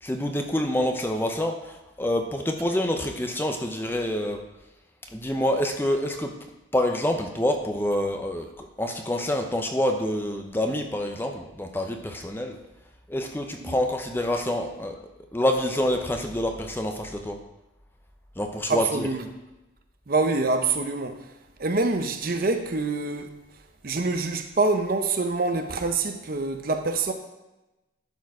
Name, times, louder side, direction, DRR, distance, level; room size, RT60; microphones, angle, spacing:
voice 1, 0.0-4.4 5.1-6.3 6.7-12.6 13.1-15.0 15.3-17.4 18.4-19.1, left 1 dB, 10° left, 0.7 m, -27 dB
voice 2, 18.7-19.2 20.1-21.2 21.6-23.4 23.8-27.1, right 3 dB, 50° right, 0.7 m, -25 dB
12.0 x 4.5 x 4.8 m
head